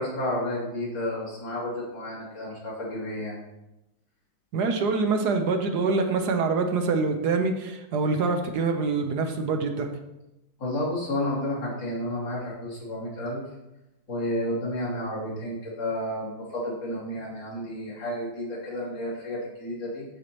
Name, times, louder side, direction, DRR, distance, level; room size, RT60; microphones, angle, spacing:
voice 1, 0.0-3.4 10.6-13.4 14.1-20.0, left 1 dB, 70° left, -6 dB, 3.5 m, -31 dB
voice 2, 4.5-9.9, right 4 dB, 65° right, 5 dB, 1.3 m, -25 dB
13.5 x 4.7 x 3.0 m, 0.92 s
omnidirectional pair, 2.1 m